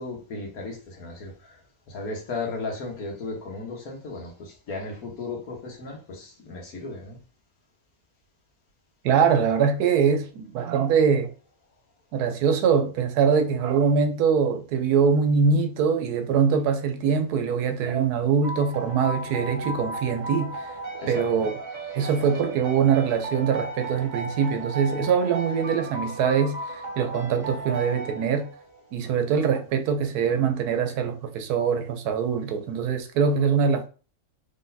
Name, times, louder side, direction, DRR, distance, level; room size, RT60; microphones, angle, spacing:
voice 1, 0.0-1.6 1.9-7.2 20.9-21.5, left 3 dB, 75° left, 1.6 m, -35 dB
voice 2, 9.0-11.3 12.1-20.7 21.1-21.5 21.9-28.5 28.9-33.9, right 6 dB, 90° right, 1.2 m, -23 dB
sound 1, 18.4-28.8, right 2 dB, 45° right, 0.6 m, -35 dB
3.9 x 3.5 x 2.7 m
omnidirectional pair, 1.6 m